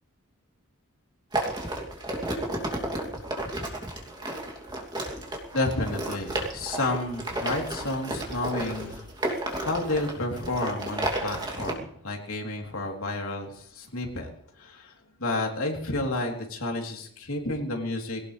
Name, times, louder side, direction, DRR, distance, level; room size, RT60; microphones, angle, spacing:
sound 1, 1.3-11.7, right 1 dB, 20° right, 2.8 m, -32 dB
voice 1, 5.5-18.2, left 2 dB, 75° left, 1 dB, 3.6 m, -31 dB
22.0 x 17.5 x 3.4 m, 0.65 s
head